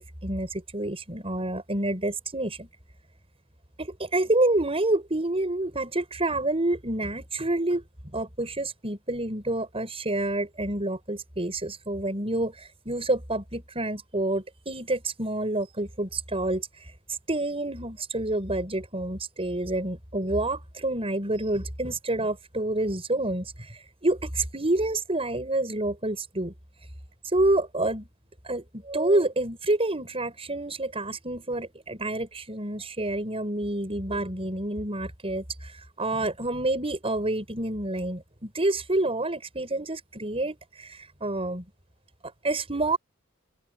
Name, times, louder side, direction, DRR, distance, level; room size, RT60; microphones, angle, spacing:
voice 1, 0.0-2.7 3.8-7.8 8.1-16.7 17.3-23.7 24.0-26.5 27.3-28.1 28.4-35.7 36.0-41.6 42.4-43.0, right 2 dB, 30° right, 6.5 m, -28 dB
open air
head